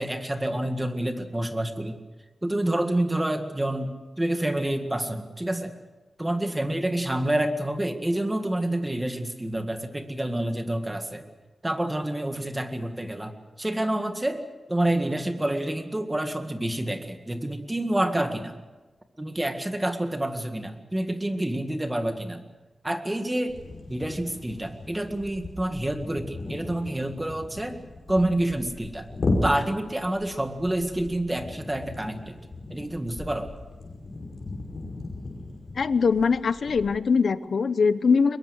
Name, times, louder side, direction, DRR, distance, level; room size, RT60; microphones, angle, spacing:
voice 1, 0.0-2.0 2.4-5.7 6.2-11.2 11.6-14.4 14.7-18.6 19.2-22.4 22.8-23.6 23.9-27.8 28.1-29.1 29.4-32.3 32.7-33.5, right 1 dB, 15° right, 6 dB, 1.9 m, -28 dB
sound 1, 23.5-37.0, left 2 dB, 55° left, 5.6 m, -36 dB
voice 2, 35.8-38.4, left 5 dB, 70° left, 14 dB, 0.9 m, -22 dB
23.0 x 22.0 x 6.5 m, 1.2 s
wide cardioid pair, 140°, 0 cm